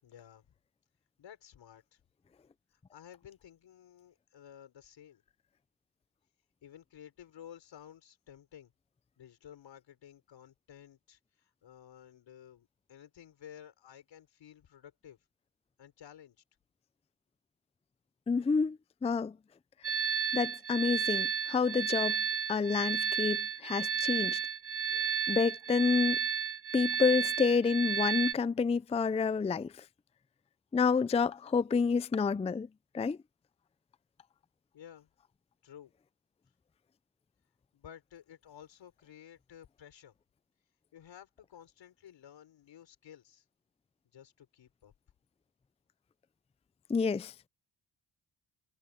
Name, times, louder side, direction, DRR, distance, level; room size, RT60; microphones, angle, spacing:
voice 1, 0.0-0.5 1.2-2.0 2.9-5.2 6.6-8.7 9.2-15.2 15.8-16.4 24.7-25.3 34.7-35.1 35.6-35.9 37.7-40.1 40.9-43.4 44.1-44.9, left 9 dB, 85° left, 5.0 m, -54 dB
voice 2, 18.3-19.4 19.9-20.0 20.3-22.2 22.5-24.4 25.3-26.2 26.7-29.7 30.7-32.7 32.9-33.2 46.9-47.3, left 5 dB, 15° left, 0.4 m, -29 dB
sound 1, 19.8-28.3, right 7 dB, 30° right, 1.0 m, -32 dB
cardioid pair, 85°, 43 cm